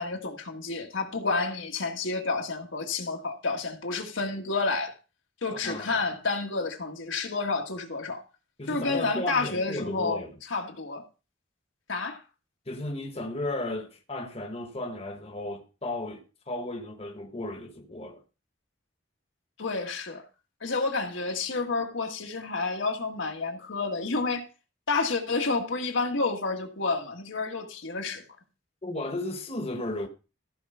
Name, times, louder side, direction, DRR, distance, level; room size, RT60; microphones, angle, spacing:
voice 1, 0.0-4.9 5.4-8.2 8.7-10.2 10.5-11.0 11.9-12.2 19.6-20.2 20.6-24.4 24.9-28.2, left 3 dB, 80° left, 1.7 m, -30 dB
voice 2, 5.5-6.1 8.6-10.3 12.7-18.2 28.8-30.1, left 1 dB, 30° left, 1.2 m, -35 dB
14.0 x 4.7 x 5.6 m
head